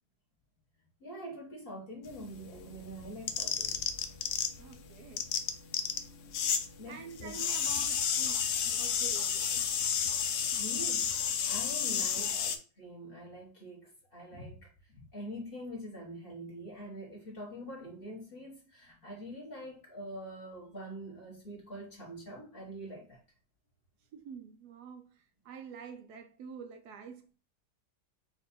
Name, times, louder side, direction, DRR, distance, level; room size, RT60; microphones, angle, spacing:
voice 1, 1.0-3.9 6.8-7.3 10.6-11.1 11.5-23.2, equal, 35° left, 1.4 m, -45 dB
sound 1, 2.1-4.7 5.0-6.7 6.9-12.6, left 7 dB, 65° left, 0.8 m, -31 dB
voice 2, 4.5-5.3 6.9-9.7 11.9-12.3 24.1-27.4, right 6 dB, 75° right, 1.2 m, -48 dB
4.5 x 2.5 x 4.1 m
omnidirectional pair, 1.8 m